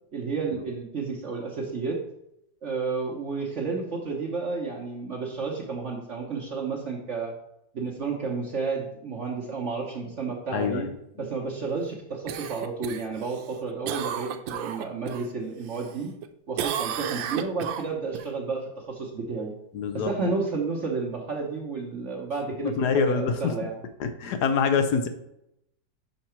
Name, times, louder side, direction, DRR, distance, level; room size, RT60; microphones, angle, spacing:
voice 1, 0.1-2.0 2.6-7.3 7.7-10.9 11.2-16.1 16.5-19.5 19.9-23.7, right 4 dB, 50° right, -2 dB, 1.0 m, -31 dB
voice 2, 10.5-10.9 19.7-20.1 22.6-23.4 24.0-25.1, left 5 dB, 70° left, 8 dB, 1.1 m, -25 dB
Cough, 12.3-15.3 15.7-16.3 16.6-18.3 22.7-22.8, right 9 dB, 85° right, 1.3 m, -33 dB
5.9 x 5.7 x 4.4 m, 0.80 s
omnidirectional pair, 2.0 m